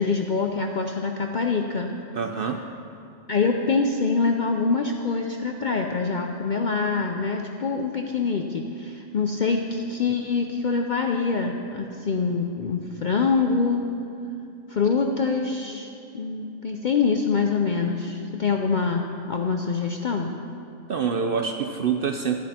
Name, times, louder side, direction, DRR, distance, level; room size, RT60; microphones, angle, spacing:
voice 1, 0.0-2.0 3.3-13.9 14.7-19.0 19.3-20.3, left 4 dB, 60° left, 3 dB, 0.5 m, -25 dB
voice 2, 2.1-2.6 20.9-22.4, right 6 dB, 60° right, 5 dB, 0.6 m, -26 dB
11.0 x 10.5 x 4.3 m, 2.8 s
omnidirectional pair, 1.4 m